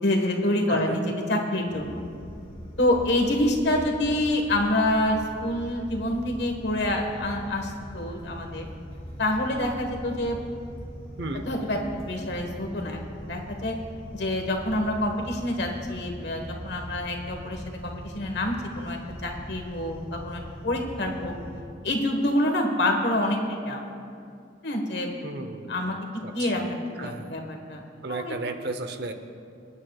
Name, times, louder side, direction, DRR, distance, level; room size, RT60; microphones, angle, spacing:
voice 1, 0.0-1.0 1.3-2.0 2.8-8.7 9.2-10.4 11.4-11.8 12.1-13.7 14.1-21.3 21.8-23.8 24.6-25.1 25.7-25.9 26.3-27.8 28.1-28.4, left 1 dB, 60° left, 2 dB, 1.4 m, -27 dB
sound 1, 1.7-21.6, equal, 30° left, 1.9 m, -41 dB
voice 2, 25.2-25.9 26.2-26.7 27.0-27.4 28.0-29.1, right 2 dB, 55° right, 7 dB, 0.8 m, -34 dB
27.0 x 9.5 x 2.4 m, 2.4 s
head